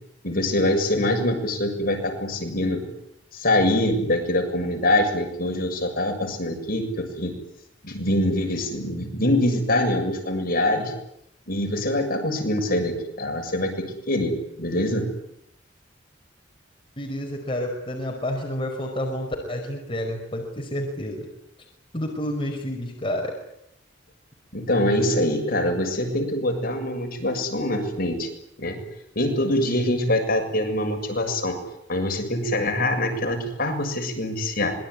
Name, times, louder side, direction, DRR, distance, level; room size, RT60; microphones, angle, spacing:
voice 1, 0.2-2.8 3.3-7.3 7.8-10.9 11.5-14.3 14.6-15.1 24.5-28.3 28.6-28.8 29.2-31.6 31.9-34.7, left 1 dB, 50° left, 4 dB, 7.1 m, -24 dB
voice 2, 17.0-21.3 21.9-23.3, left 1 dB, 30° left, 2 dB, 5.2 m, -29 dB
26.0 x 22.5 x 9.9 m, 0.78 s
head